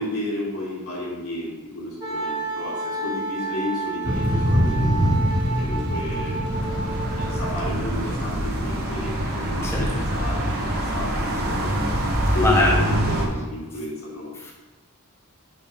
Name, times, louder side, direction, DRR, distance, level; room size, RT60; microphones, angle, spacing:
voice 1, 0.0-5.2 5.5-6.5 7.2-11.8 12.3-14.3, left 2 dB, 70° left, -4 dB, 2.1 m, -32 dB
Wind instrument woodwind instrument, 2.0-8.0, right 3 dB, 15° right, 1.5 m, -31 dB
Thunder / Rain, 4.0-12.4, equal, 75° right, 1.4 m, -26 dB
sound 1, 6.5-13.3, right 1 dB, 45° right, 1.0 m, -25 dB
voice 2, 12.3-12.7 14.4-14.5, left 2 dB, 10° left, -2 dB, 0.7 m, -22 dB
5.2 x 4.2 x 5.3 m, 1.1 s
head